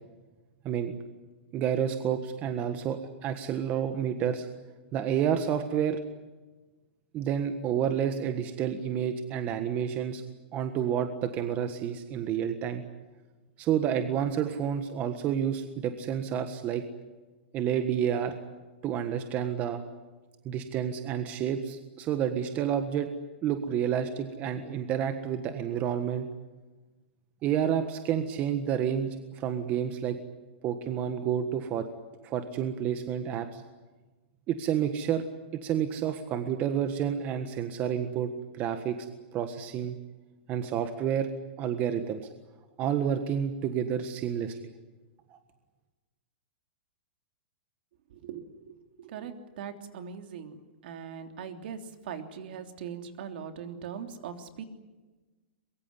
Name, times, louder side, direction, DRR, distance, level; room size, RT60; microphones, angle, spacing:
voice 1, 1.5-4.5 4.9-6.0 7.1-10.2 10.5-12.8 13.6-16.8 17.5-18.3 18.8-19.8 20.4-23.1 23.4-26.3 27.4-30.2 30.6-31.9 32.2-33.6 34.5-35.2 35.5-39.0 39.3-40.0 40.5-41.3 41.6-42.2 42.8-44.7 45.3-45.4, right 9 dB, 25° right, 7 dB, 1.5 m, -29 dB
voice 2, 48.1-50.6 50.8-54.6, right 7 dB, 55° right, 6 dB, 3.2 m, -41 dB
23.5 x 22.5 x 9.8 m, 1.2 s
hypercardioid pair, 160°, 6 cm